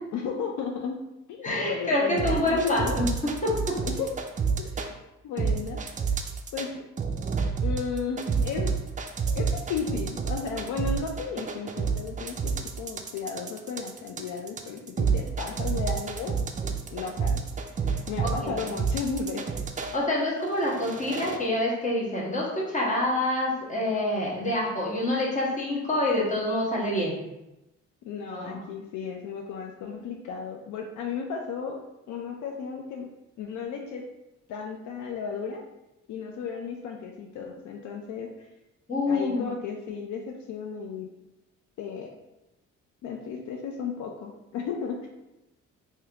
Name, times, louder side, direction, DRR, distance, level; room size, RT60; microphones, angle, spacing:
voice 1, 0.1-1.0 1.3-3.0 3.8-4.1 4.6-4.9 5.2-5.8 6.5-6.8 7.6-8.7 9.4-16.4 16.9-17.4 18.1-19.4 28.1-31.8 32.1-33.1 33.4-34.1 34.5-35.6 36.1-38.5 39.1-41.1 41.8-42.1 43.0-45.1, left 6 dB, 75° left, 2 dB, 0.5 m, -34 dB
voice 2, 1.4-3.1 3.4-3.5 18.2-18.5 19.9-27.2 28.3-28.6 38.9-39.4, left 1 dB, 25° left, -4 dB, 1.3 m, -26 dB
sound 1, 2.2-4.9 5.4-6.7 7.0-20.0 20.5-21.4, right 5 dB, 25° right, 0.4 m, -29 dB
3.5 x 2.8 x 3.4 m, 0.94 s
cardioid pair, 90°, 30 cm